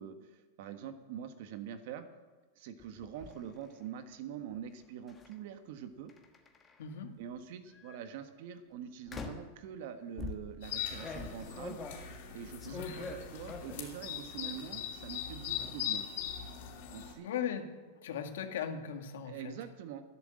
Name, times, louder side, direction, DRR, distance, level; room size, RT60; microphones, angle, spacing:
voice 1, 0.0-2.0 2.6-6.1 7.2-11.8 12.3-16.1 16.9-17.3 19.2-20.0, right 9 dB, 55° right, 9 dB, 1.4 m, -45 dB
door slam, 2.8-3.3 5.1-5.3 6.1-6.9 7.7-8.0 9.1-9.6 10.2-13.9 14.3-14.8 15.1-15.7, left 4 dB, 15° left, 1.4 m, -45 dB
voice 2, 6.8-7.2 12.7-13.0 17.2-17.7 18.0-19.6, left 8 dB, 80° left, 5 dB, 1.9 m, -38 dB
sound 1, 10.6-17.1, left 9 dB, 60° left, 3.2 m, -40 dB
12.0 x 10.5 x 7.7 m, 1.3 s
supercardioid pair, 155°, 0 cm